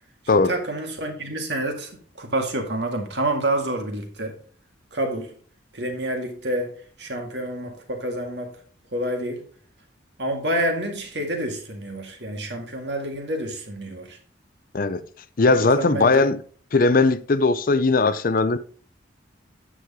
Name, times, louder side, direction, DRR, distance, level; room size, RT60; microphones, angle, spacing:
voice 1, 0.3-4.4 4.9-5.3 5.7-6.7 7.0-8.5 8.9-9.4 10.2-14.2 15.5-16.3, right 1 dB, 65° right, 2.0 m, -28 dB
voice 2, 14.7-15.1 15.4-16.4 16.7-18.6, left 3 dB, 50° left, 0.5 m, -19 dB
9.3 x 6.4 x 3.7 m
head